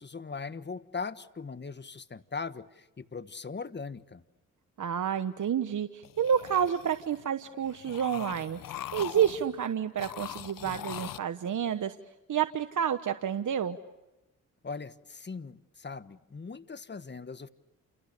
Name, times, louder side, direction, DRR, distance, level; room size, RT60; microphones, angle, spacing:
voice 1, 0.0-4.2 14.6-17.5, left 4 dB, 35° left, 13 dB, 1.4 m, -40 dB
voice 2, 4.8-8.6 8.9-11.9 12.3-13.8, right 8 dB, 65° right, 9 dB, 1.2 m, -29 dB
sound 1, 6.0-7.2 7.6-9.6 10.0-11.2, left 11 dB, 80° left, 1.0 m, -42 dB
30.0 x 28.5 x 6.9 m, 1.0 s
cardioid pair, 70°, 33 cm